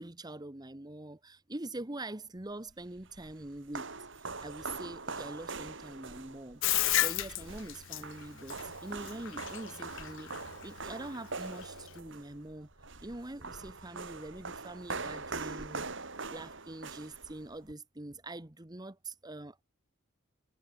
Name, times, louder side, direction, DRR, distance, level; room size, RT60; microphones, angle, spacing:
voice 1, 0.0-6.6 7.0-12.7 13.0-15.9 16.3-19.6, right 2 dB, 20° right, 1.3 m, -44 dB
sound 1, 2.7-17.7, right 3 dB, 65° right, 5.1 m, -43 dB
Bathtub (filling or washing), 6.6-12.0, left 14 dB, 65° left, 0.6 m, -33 dB
head